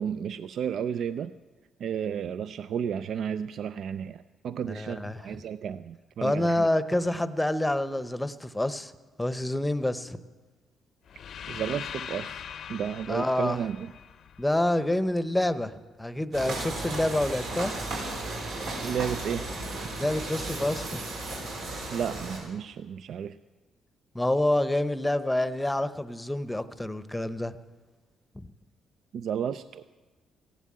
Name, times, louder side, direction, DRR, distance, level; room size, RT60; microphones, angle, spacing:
voice 1, 0.0-1.3 1.8-6.7 11.5-13.9 18.8-19.4 21.9-23.4 29.1-29.8, right 8 dB, 65° right, 13 dB, 0.4 m, -32 dB
voice 2, 4.7-5.2 6.2-8.9 9.2-10.2 13.1-13.6 14.4-17.7 20.0-21.0 24.1-27.5 28.3-28.5, left 1 dB, 10° left, 13 dB, 0.8 m, -27 dB
sound 1, 11.1-15.1, left 8 dB, 65° left, 0.6 m, -41 dB
sound 2, 16.3-22.4, right 2 dB, 85° right, 5.0 m, -34 dB
15.0 x 11.0 x 8.5 m, 1.3 s
cardioid pair, 90°, 0 cm